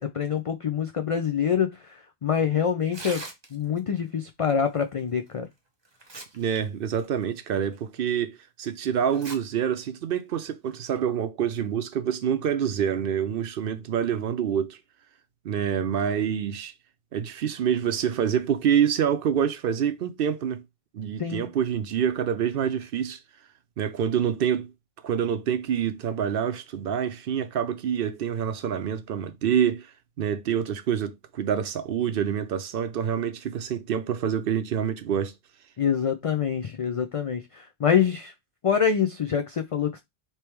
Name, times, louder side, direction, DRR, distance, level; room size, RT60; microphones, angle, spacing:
voice 1, 0.1-1.9 2.2-3.2 3.5-5.5 21.2-21.5 35.8-38.3 38.6-40.0, left 7 dB, 65° left, 0.3 m, -25 dB
Tearing, 2.8-3.8 5.3-5.4 5.8-6.6 6.9-7.1 7.7-7.8 9.1-9.4 9.8-9.9 10.7-11.0, right 2 dB, 25° right, 0.8 m, -40 dB
voice 2, 6.3-14.8 15.4-16.7 17.1-20.6 20.9-23.2 23.8-24.7 25.0-29.9 30.2-35.3, right 8 dB, 65° right, 0.7 m, -26 dB
3.4 x 3.0 x 4.4 m
omnidirectional pair, 1.1 m